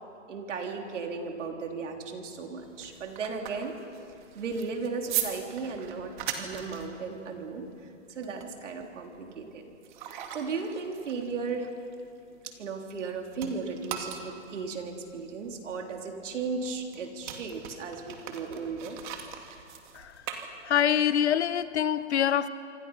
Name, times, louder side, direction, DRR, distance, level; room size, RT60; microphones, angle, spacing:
voice 1, 0.3-3.7 4.3-7.7 8.1-11.7 12.4-19.0, right 4 dB, 65° right, 3 dB, 3.7 m, -36 dB
sound 1, 2.6-13.1 13.4-21.1, right 9 dB, 40° right, 2.2 m, -40 dB
voice 2, 20.6-22.5, left 9 dB, 60° left, 15 dB, 1.0 m, -25 dB
26.5 x 24.5 x 5.7 m, 2.5 s
hypercardioid pair, 160°, 38 cm